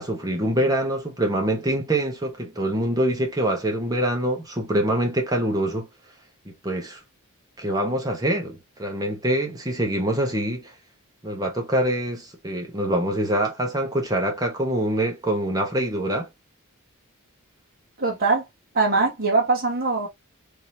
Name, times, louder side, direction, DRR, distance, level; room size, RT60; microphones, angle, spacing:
voice 1, 0.0-5.9 6.5-7.0 7.6-10.7 11.2-16.3, right 1 dB, 15° right, 1.0 m, -25 dB
voice 2, 18.0-18.4 18.7-20.1, right 3 dB, 45° right, 1.3 m, -21 dB
3.6 x 3.1 x 2.7 m
head